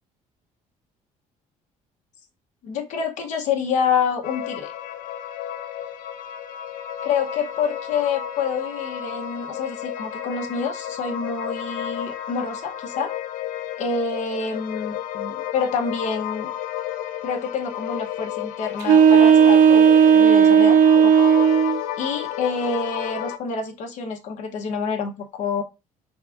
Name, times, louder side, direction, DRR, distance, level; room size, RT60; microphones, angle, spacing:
voice 1, 2.6-4.7 7.0-13.1 13.8-16.5 17.2-21.3 22.0-25.6, left 5 dB, 60° left, 4 dB, 1.0 m, -27 dB
sound 1, 4.2-23.4, left 11 dB, 75° left, 0.5 m, -32 dB
sound 2, 18.8-21.8, right 7 dB, 85° right, 0.5 m, -14 dB
4.6 x 3.6 x 2.5 m, 0.27 s
cardioid pair, 160°, 14 cm